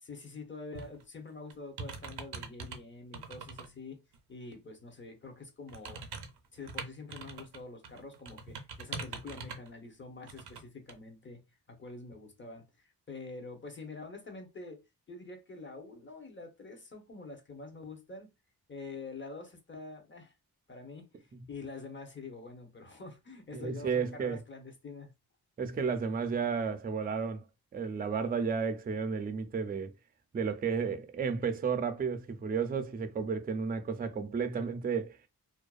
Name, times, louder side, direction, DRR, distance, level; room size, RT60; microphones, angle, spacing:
voice 1, 0.0-4.0 4.3-6.0 6.5-11.4 11.7-14.8 15.1-18.3 18.7-20.3 20.7-25.1, left 3 dB, 30° left, 0.7 m, -46 dB
sound 1, 0.7-1.0 1.5-2.8 3.1-3.7 4.1-4.2 5.7-7.6 7.8-9.7 10.3-10.6 10.9-11.0, right 4 dB, 85° right, 0.6 m, -42 dB
voice 2, 23.5-24.4 25.6-27.4 27.7-29.9 30.3-35.2, right 5 dB, 25° right, 0.4 m, -32 dB
2.5 x 2.2 x 2.3 m
cardioid pair, 75°, 39 cm